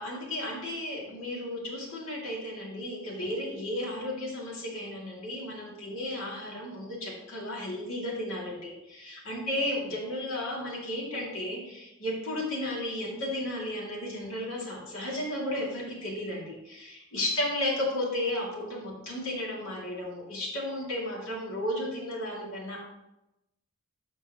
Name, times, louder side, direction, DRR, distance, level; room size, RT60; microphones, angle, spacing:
voice 1, 0.0-22.8, left 1 dB, 70° left, -3 dB, 2.5 m, -34 dB
13.0 x 4.6 x 3.0 m, 0.93 s
head